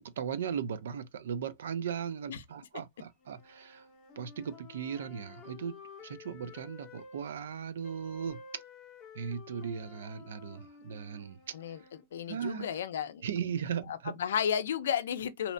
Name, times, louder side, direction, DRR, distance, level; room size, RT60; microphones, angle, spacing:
voice 1, 0.0-3.9 4.2-8.6 9.1-11.4 12.3-12.7 13.2-14.2, right 7 dB, 90° right, 0.4 m, -37 dB
sound 1, 3.2-7.3 7.8-12.0, left 4 dB, 15° left, 0.8 m, -52 dB
voice 2, 12.1-13.2 13.9-15.5, left 8 dB, 90° left, 0.4 m, -33 dB
2.7 x 2.1 x 2.5 m
supercardioid pair, 175°, 0 cm